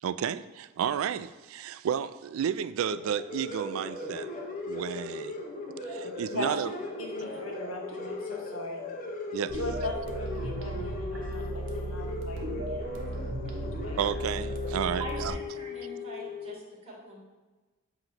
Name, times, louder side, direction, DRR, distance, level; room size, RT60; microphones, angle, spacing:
voice 1, 0.0-4.3 4.7-5.4 5.8-6.7 9.3-9.6 14.0-15.3, right 8 dB, 85° right, 15 dB, 0.3 m, -32 dB
sound 1, 2.8-16.5, left 2 dB, 40° left, 0.9 m, -38 dB
voice 2, 6.0-6.7 7.0-8.8 9.5-12.9 13.2-14.0 14.6-15.0, left 2 dB, 80° left, 1 dB, 1.1 m, -39 dB
sound 2, 9.5-15.3, right 1 dB, 60° right, 1.0 m, -36 dB
voice 3, 15.0-17.2, right 1 dB, 30° right, -4 dB, 1.9 m, -42 dB
7.7 x 3.0 x 5.8 m, 1.2 s
head